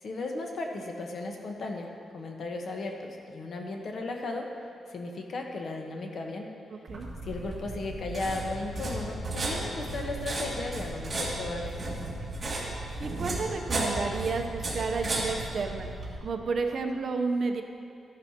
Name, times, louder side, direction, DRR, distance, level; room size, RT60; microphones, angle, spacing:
voice 1, 0.0-4.5 4.9-6.5 7.2-11.9, left 2 dB, 50° left, 2 dB, 1.1 m, -36 dB
voice 2, 6.7-7.1 13.0-15.9 16.2-17.6, right 4 dB, 45° right, 4 dB, 0.7 m, -31 dB
sound 1, 6.9-16.2, right 2 dB, 25° right, 2.2 m, -34 dB
13.5 x 10.5 x 2.9 m, 2.7 s
wide cardioid pair, 140°, 0 cm